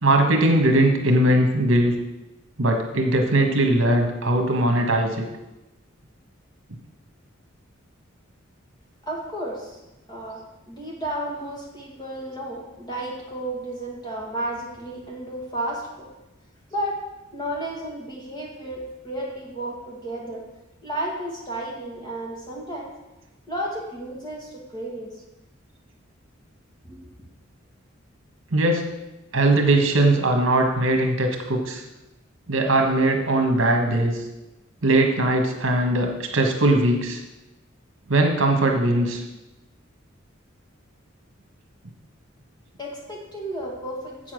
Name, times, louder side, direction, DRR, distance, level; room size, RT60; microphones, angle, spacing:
voice 1, 0.0-1.9 2.6-5.3 28.5-28.9 29.3-31.8 32.5-34.2 34.8-37.2 38.1-39.2, right 1 dB, 70° right, 3 dB, 1.4 m, -20 dB
voice 2, 9.0-9.8 10.1-10.4 10.7-16.1 16.7-17.0 17.3-20.4 20.8-22.9 23.5-25.1 26.8-27.1 42.8-44.3, right 1 dB, 20° left, -2 dB, 2.0 m, -32 dB
7.7 x 7.1 x 6.4 m, 1.0 s
head